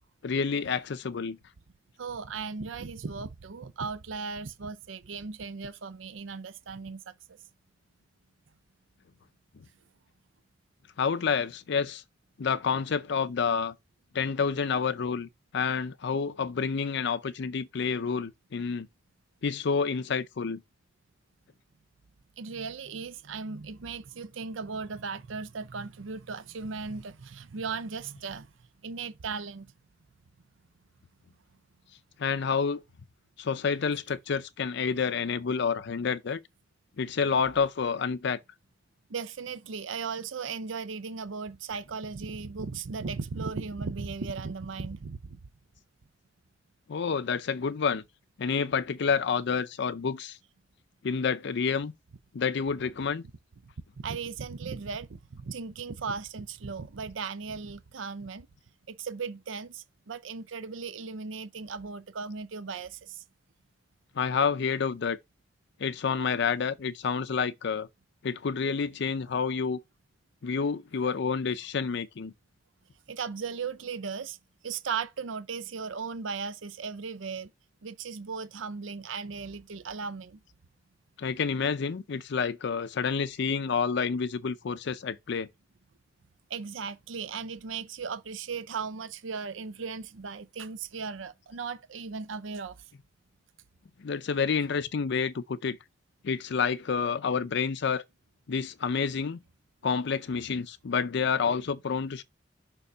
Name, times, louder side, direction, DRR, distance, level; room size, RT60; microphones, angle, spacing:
voice 1, 0.2-1.4 11.0-12.0 12.4-13.7 14.1-15.3 15.5-18.9 19.4-20.6 32.2-32.8 33.4-36.4 37.0-38.4 46.9-48.0 48.4-50.4 51.0-51.9 52.3-53.3 64.2-65.2 65.8-67.9 68.2-69.8 70.4-72.3 81.2-85.5 94.0-95.8 96.2-98.0 98.5-99.4 99.8-102.2, left 5 dB, 65° left, 0.5 m, -29 dB
voice 2, 2.0-7.1 22.4-28.5 28.8-29.7 39.1-45.4 54.0-58.5 58.9-63.2 73.1-74.4 74.6-77.5 77.8-80.4 86.5-92.8, right 5 dB, 85° right, 0.6 m, -37 dB
6.8 x 3.6 x 5.4 m
head